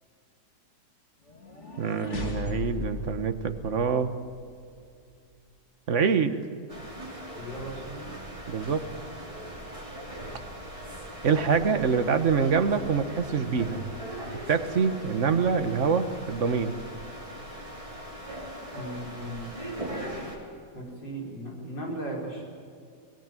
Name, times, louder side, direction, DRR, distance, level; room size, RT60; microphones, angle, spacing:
sound 1, 1.3-4.4, left 4 dB, 40° left, 2.8 m, -37 dB
voice 1, 1.8-4.1 5.9-6.3 8.5-8.8 11.2-13.8 14.5-16.7, right 6 dB, 45° right, 9 dB, 1.6 m, -25 dB
sound 2, 6.7-20.4, right 1 dB, 15° right, 5.1 m, -40 dB
voice 2, 7.4-8.1 18.7-19.5 20.7-22.4, right 1 dB, 90° left, -1 dB, 5.7 m, -37 dB
24.0 x 19.0 x 9.2 m, 2.3 s
omnidirectional pair, 1.9 m